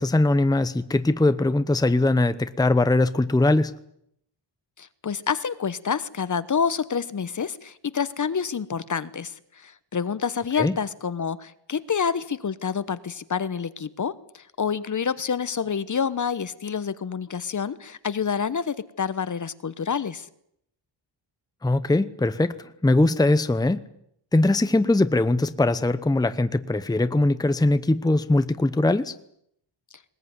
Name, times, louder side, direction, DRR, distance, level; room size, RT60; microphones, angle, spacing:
voice 1, 0.0-3.7 10.6-10.8 21.6-22.6 22.8-23.8 24.3-29.1, left 2 dB, 10° left, 12 dB, 0.9 m, -21 dB
voice 2, 4.8-20.3, left 6 dB, 40° left, 16 dB, 1.1 m, -28 dB
20.5 x 20.5 x 9.6 m, 0.72 s
wide cardioid pair, 140°, 46 cm